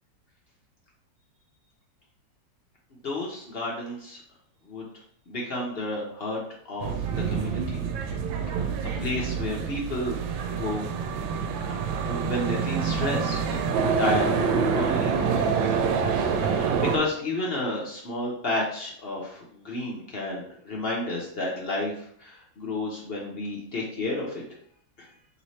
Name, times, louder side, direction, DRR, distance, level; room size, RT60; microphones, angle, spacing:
voice 1, 3.0-4.2 4.7-4.9 5.3-7.8 8.5-8.7 9.0-10.2 10.5-10.9 12.0-13.4 14.0-15.1 16.4-24.4 25.0-25.1, left 1 dB, 55° left, -3 dB, 0.6 m, -31 dB
sound 1, 6.8-17.0, right 6 dB, 85° right, 1.4 m, -26 dB
3.2 x 3.1 x 4.1 m, 0.63 s
omnidirectional pair, 2.1 m